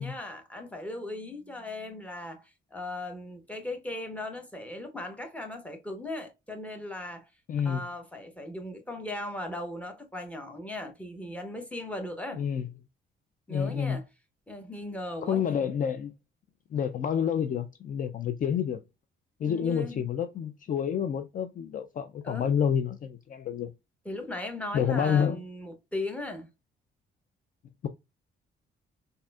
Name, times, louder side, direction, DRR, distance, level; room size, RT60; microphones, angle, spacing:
voice 1, 0.0-7.2 7.6-12.4 13.5-14.0 14.5-15.5 19.5-20.1 22.2-22.5 24.0-26.5, left 1 dB, 5° left, 0.9 m, -38 dB
voice 2, 7.5-7.8 12.3-12.7 13.5-14.0 15.2-16.1 16.7-18.8 19.4-23.7 24.7-25.4, left 8 dB, 45° left, 0.4 m, -28 dB
4.0 x 2.6 x 2.2 m
cardioid pair, 90°, 20 cm